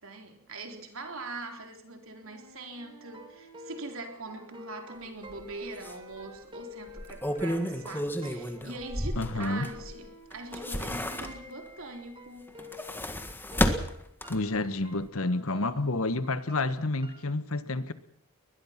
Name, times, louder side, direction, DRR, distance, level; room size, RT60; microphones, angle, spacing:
voice 1, 0.0-12.5, right 2 dB, 65° right, 3.9 m, -42 dB
Wind instrument woodwind instrument, 2.1-6.5 6.8-11.6, right 3 dB, 85° right, 7.6 m, -54 dB
sound 1, 3.1-13.2 13.5-17.3, left 3 dB, 20° right, 1.6 m, -50 dB
sound 2, 5.3-5.4 5.8-5.9 6.9-9.9 10.3-11.7 12.5-14.6 15.0-15.1, equal, 10° left, 1.7 m, -32 dB
voice 2, 9.2-9.7 14.3-17.9, left 2 dB, 70° left, 1.4 m, -29 dB
22.0 x 20.5 x 6.0 m
head